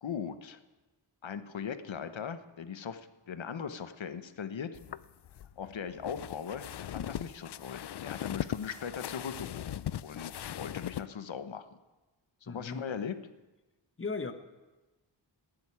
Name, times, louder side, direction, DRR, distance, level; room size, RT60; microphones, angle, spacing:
voice 1, 0.0-0.6 1.2-4.7 5.6-11.7 12.4-13.2, left 7 dB, 80° left, 11 dB, 1.1 m, -39 dB
sound 1, 4.7-11.1, left 11 dB, 60° left, 0.5 m, -39 dB
voice 2, 12.5-12.8 14.0-14.3, left 4 dB, 30° left, 8 dB, 1.1 m, -36 dB
16.5 x 7.9 x 9.6 m, 1.1 s
wide cardioid pair, 115°, 45 cm